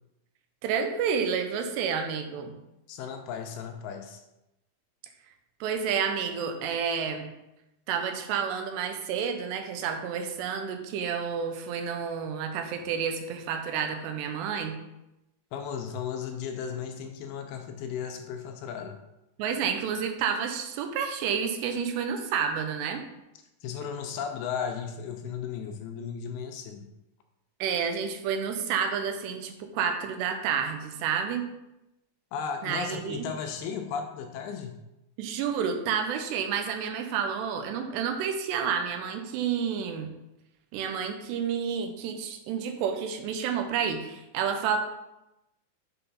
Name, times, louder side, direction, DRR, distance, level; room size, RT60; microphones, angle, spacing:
voice 1, 0.6-2.5 5.6-7.3 7.9-14.8 19.4-23.0 27.6-31.5 32.6-33.3 35.2-40.1 40.7-44.8, right 7 dB, 90° right, 6 dB, 3.0 m, -30 dB
voice 2, 2.9-4.2 15.5-19.0 23.6-26.9 32.3-34.8, left 7 dB, 85° left, 4 dB, 2.4 m, -35 dB
7.9 x 3.8 x 5.4 m, 0.91 s
omnidirectional pair, 4.8 m